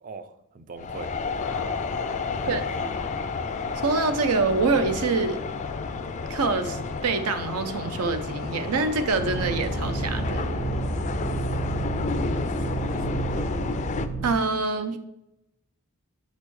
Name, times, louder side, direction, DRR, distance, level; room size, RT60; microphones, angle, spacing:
voice 1, 0.0-1.1 2.3-2.9 12.2-13.5, right 3 dB, 35° right, 11 dB, 0.4 m, -41 dB
sound 1, 0.8-14.1, left 4 dB, 30° left, 0.3 m, -31 dB
sound 2, 1.4-13.8, left 4 dB, 80° left, 0.6 m, -41 dB
voice 2, 3.8-5.4 6.3-10.5 14.2-15.0, right 3 dB, 85° right, 9 dB, 0.6 m, -25 dB
sound 3, 9.2-14.3, right 2 dB, 65° right, 1.9 m, -30 dB
6.5 x 5.4 x 3.2 m, 0.84 s
head